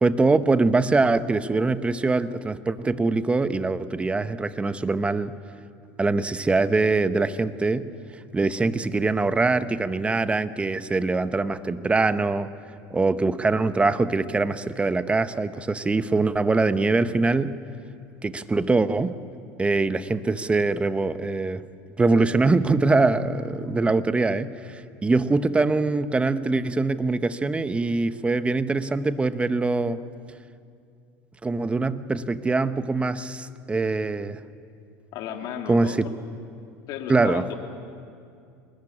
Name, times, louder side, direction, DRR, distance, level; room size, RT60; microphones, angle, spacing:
voice 1, 0.0-5.3 6.0-7.9 8.3-12.5 12.9-17.6 18.2-19.2 19.6-21.6 22.0-30.0 31.4-34.4 35.7-36.0 37.1-37.4, right 3 dB, 15° right, 12 dB, 1.0 m, -23 dB
voice 2, 35.1-36.0 36.9-37.5, left 8 dB, 60° left, 3 dB, 3.3 m, -34 dB
24.0 x 20.5 x 9.8 m, 2.4 s
supercardioid pair, 105°, 8 cm